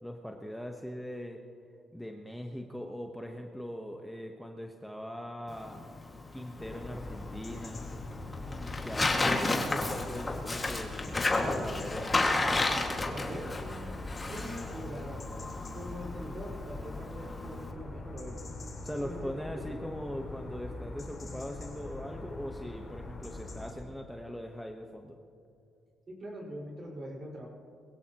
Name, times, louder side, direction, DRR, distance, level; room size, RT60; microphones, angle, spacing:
voice 1, 0.0-1.4 1.9-5.8 6.3-7.9 8.8-12.2 18.8-25.2, equal, ahead, 2 dB, 1.1 m, -40 dB
Tearing, 5.5-17.7, left 2 dB, 25° left, 1.9 m, -33 dB
sound 1, 6.6-23.7, left 2 dB, 40° left, 4.0 m, -43 dB
voice 2, 12.7-18.4 19.0-19.7 26.1-27.5, equal, 40° right, -2 dB, 4.7 m, -43 dB
21.5 x 16.0 x 3.0 m, 2.4 s
cardioid pair, 90°, 0 cm